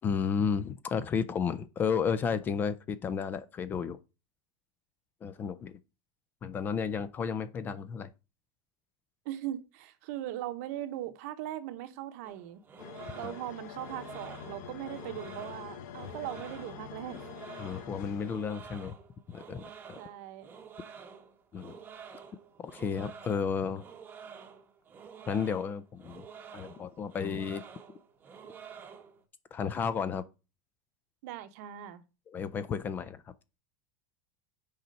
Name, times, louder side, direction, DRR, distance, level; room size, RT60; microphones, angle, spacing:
voice 1, 0.0-4.0 5.2-5.7 6.4-8.1 13.2-13.3 17.6-18.9 19.3-20.0 21.5-21.8 22.6-23.8 25.3-26.3 26.5-27.6 29.5-30.2 32.3-33.2, left 6 dB, 20° left, 0.4 m, -32 dB
voice 2, 9.2-12.6 13.1-17.2 20.0-20.5 31.2-32.0, right 13 dB, 55° right, 0.9 m, -39 dB
sound 1, 12.2-29.2, right 6 dB, 20° right, 0.9 m, -50 dB
sound 2, 12.8-18.8, left 8 dB, 65° left, 0.9 m, -46 dB
6.6 x 4.3 x 5.2 m
supercardioid pair, 160°, 10 cm